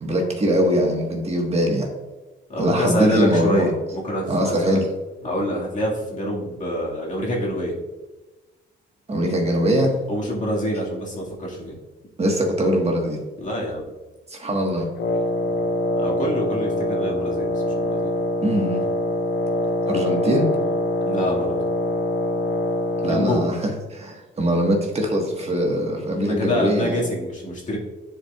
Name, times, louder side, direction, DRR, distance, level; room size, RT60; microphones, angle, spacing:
voice 1, 0.0-1.9 2.6-3.7 4.3-4.9 9.1-9.9 12.2-13.2 14.3-14.9 18.4-18.8 19.9-20.5 23.0-27.0, equal, 30° right, 0 dB, 1.4 m, -22 dB
voice 2, 2.5-4.8 5.2-7.7 10.1-11.8 13.4-13.8 16.0-18.1 21.0-21.6 23.0-23.5 26.2-27.8, equal, 40° left, -3 dB, 2.0 m, -26 dB
Wind instrument woodwind instrument, 15.0-23.5, left 1 dB, 65° left, 0.7 m, -24 dB
10.0 x 4.6 x 2.4 m, 1.2 s
cardioid pair, 90°, 20 cm